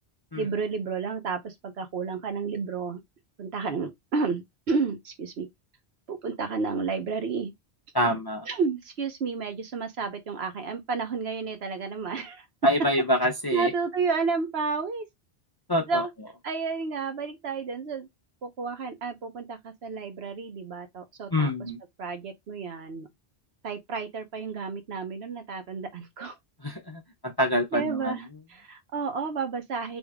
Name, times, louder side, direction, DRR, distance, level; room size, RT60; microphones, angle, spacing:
voice 1, 0.4-3.0 3.4-5.5 6.1-7.5 8.0-8.2 8.5-12.4 13.5-15.0 15.9-16.1 16.4-18.1 18.4-21.7 22.0-23.1 23.6-26.4 27.7-30.0, right 4 dB, 70° right, 1.1 m, -31 dB
voice 2, 7.9-8.4 12.6-13.7 15.7-16.0 21.3-21.8 26.6-28.1, equal, 30° left, 0.4 m, -26 dB
3.6 x 2.6 x 3.4 m
omnidirectional pair, 1.1 m